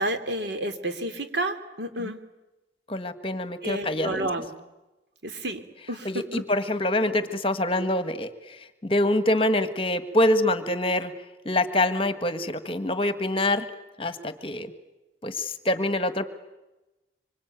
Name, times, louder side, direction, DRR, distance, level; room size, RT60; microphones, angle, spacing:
voice 1, 0.0-2.2 3.6-4.5 5.2-5.6 5.9-6.4, right 1 dB, 70° right, 8 dB, 2.9 m, -30 dB
voice 2, 2.9-4.3 6.0-11.1 11.4-13.7 14.0-14.7 15.2-16.3, left 1 dB, 30° left, 11 dB, 1.6 m, -25 dB
25.5 x 25.0 x 9.2 m, 1.0 s
head